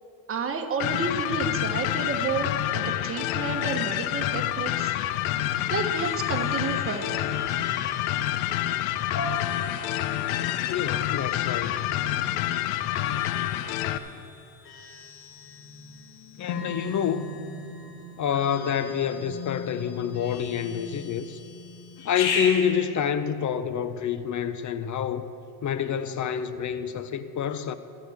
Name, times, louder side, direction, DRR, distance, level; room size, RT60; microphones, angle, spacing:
voice 1, 0.3-2.5 2.7-4.9 5.7-7.3, right 5 dB, 25° right, 1.4 m, -31 dB
sound 1, 0.8-14.0, left 13 dB, 70° left, 0.8 m, -28 dB
sound 2, 5.9-22.6, left 4 dB, 90° left, 2.6 m, -38 dB
voice 2, 10.7-11.8 16.4-17.3 18.2-21.4 22.0-25.2 25.6-27.7, left 8 dB, 40° left, 0.7 m, -27 dB
24.5 x 8.5 x 3.6 m
supercardioid pair, 80°, 48 cm